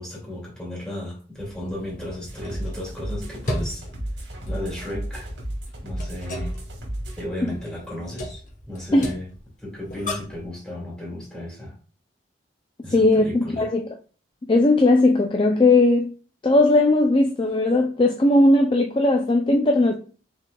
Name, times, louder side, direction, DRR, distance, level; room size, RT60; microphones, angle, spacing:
voice 1, 0.0-3.8 4.5-5.3 5.8-6.5 7.2-9.3 9.6-11.8 12.8-13.7, left 1 dB, 5° left, 2.2 m, -34 dB
sound 1, 1.3-10.5, left 1 dB, 45° left, 1.0 m, -37 dB
sound 2, 2.3-7.3, right 1 dB, 75° right, 1.8 m, -33 dB
voice 2, 12.8-14.0 14.5-16.1 16.4-19.9, left 2 dB, 25° left, 0.4 m, -18 dB
5.7 x 3.7 x 2.3 m
head